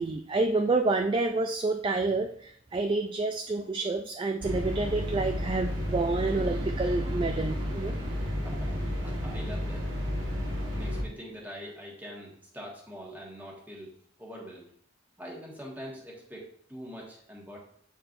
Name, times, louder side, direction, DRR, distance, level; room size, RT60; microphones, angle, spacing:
voice 1, 0.0-8.2, right 3 dB, 25° right, 5 dB, 0.3 m, -29 dB
sound 1, 4.4-11.0, left 1 dB, 75° right, 1.6 m, -32 dB
voice 2, 8.4-9.9 10.7-13.9 14.2-14.7 15.2-17.6, equal, 10° right, -3 dB, 1.6 m, -44 dB
8.5 x 4.5 x 2.6 m, 0.62 s
head